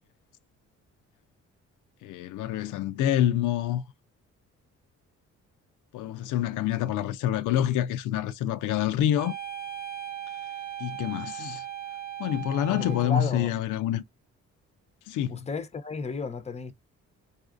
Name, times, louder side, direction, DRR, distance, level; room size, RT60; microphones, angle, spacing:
voice 1, 2.0-3.8 5.9-9.3 10.8-11.7 12.2-14.0 15.1-15.4, left 11 dB, 85° left, 0.5 m, -27 dB
sound 1, 9.2-13.4, right 10 dB, 85° right, 1.6 m, -38 dB
voice 2, 12.7-13.5 15.3-16.7, left 3 dB, 20° left, 0.7 m, -33 dB
4.0 x 2.5 x 2.4 m
cardioid pair, 90°, 30 cm